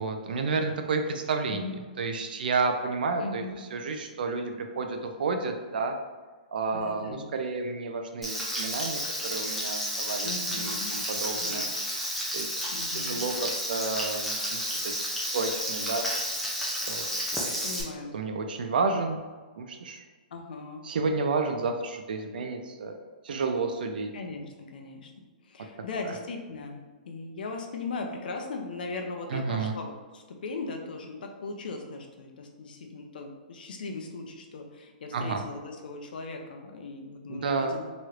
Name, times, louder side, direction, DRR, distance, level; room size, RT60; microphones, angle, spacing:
voice 1, 0.0-1.6 2.0-3.4 3.7-6.0 6.5-11.7 12.3-16.1 16.7-17.0 18.1-19.2 19.6-20.0 20.8-22.9 23.2-24.1 26.1-26.2 29.3-29.7 35.1-35.4 37.3-37.8, right 4 dB, 70° right, 5 dB, 0.5 m, -31 dB
voice 2, 3.2-3.6 6.7-7.3 10.2-10.9 11.3-11.7 12.7-13.2 17.6-18.1 20.3-20.9 24.1-37.8, left 3 dB, 70° left, 3 dB, 0.5 m, -39 dB
Frying (food), 8.2-17.8, equal, ahead, 0.4 m, -31 dB
3.1 x 3.0 x 2.4 m, 1.4 s
hypercardioid pair, 165°, 5 cm